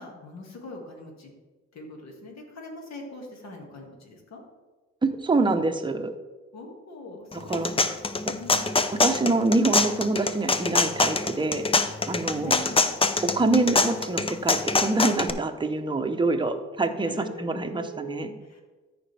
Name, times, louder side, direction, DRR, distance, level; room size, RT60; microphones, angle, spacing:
voice 1, 0.0-1.3 1.7-4.4 6.5-8.8 11.7-11.9 12.3-13.0 17.1-18.6, left 1 dB, 60° left, 1 dB, 2.1 m, -42 dB
voice 2, 5.0-6.1 7.5-7.7 9.0-11.7 12.1-12.5 13.2-17.1 17.4-18.3, right 2 dB, 15° right, 5 dB, 0.9 m, -25 dB
sound 1, 7.3-15.3, left 3 dB, 20° left, 0.5 m, -24 dB
13.5 x 5.1 x 3.4 m, 1.3 s
cardioid pair, 90°, 30 cm